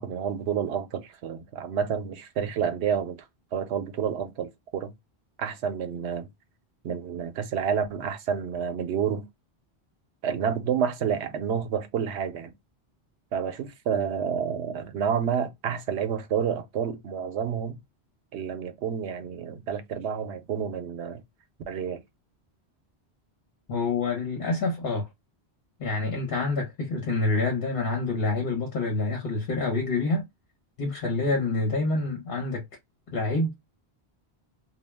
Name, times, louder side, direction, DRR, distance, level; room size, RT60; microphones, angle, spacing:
voice 1, 0.0-3.2 3.5-4.9 5.4-6.3 6.8-9.3 10.2-12.5 13.3-17.8 18.3-21.2 21.7-22.0, right 7 dB, 80° right, 0.8 m, -29 dB
voice 2, 23.7-25.1 25.8-30.2 30.8-32.6 33.1-33.5, left 3 dB, 60° left, 1.0 m, -27 dB
2.2 x 2.0 x 3.2 m
omnidirectional pair, 1.1 m